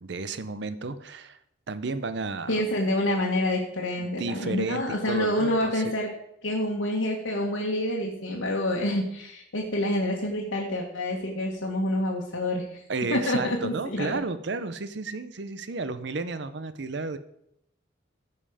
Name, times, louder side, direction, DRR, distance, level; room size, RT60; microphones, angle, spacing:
voice 1, 0.0-1.4 1.7-2.6 4.0-5.9 12.9-17.2, right 3 dB, 60° right, 13 dB, 0.6 m, -32 dB
voice 2, 2.5-6.1 6.4-12.8 13.1-14.1, left 1 dB, 85° left, -2 dB, 1.5 m, -27 dB
15.0 x 5.6 x 4.9 m, 0.78 s
head